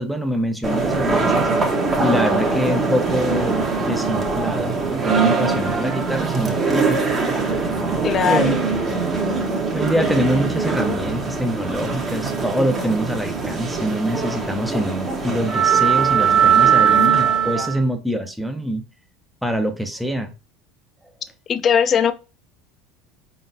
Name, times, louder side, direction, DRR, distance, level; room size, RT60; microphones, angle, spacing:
voice 1, 0.0-1.5 2.0-7.0 8.2-8.6 9.7-18.8 19.4-20.3, equal, ahead, 0.8 m, -25 dB
sound 1, 0.6-17.8, right 5 dB, 30° right, 1.4 m, -21 dB
voice 2, 8.0-8.6 17.5-17.7 21.5-22.1, left 7 dB, 40° left, 0.6 m, -19 dB
4.6 x 3.8 x 2.7 m
hypercardioid pair, 90°, 0 cm